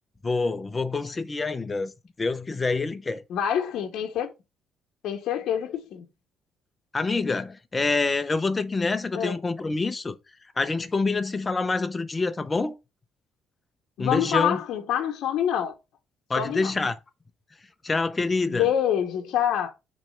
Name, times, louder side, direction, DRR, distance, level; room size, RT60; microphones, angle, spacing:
voice 1, 0.2-1.9 2.2-3.2 6.9-10.2 10.6-12.8 14.0-14.6 16.3-17.0 17.8-18.7, left 3 dB, 15° left, 0.5 m, -26 dB
voice 2, 3.3-4.3 5.0-6.1 9.1-9.4 14.0-15.7 16.4-16.7 18.5-19.7, left 9 dB, 60° left, 0.9 m, -26 dB
6.1 x 3.1 x 5.5 m
cardioid pair, 175°, 0 cm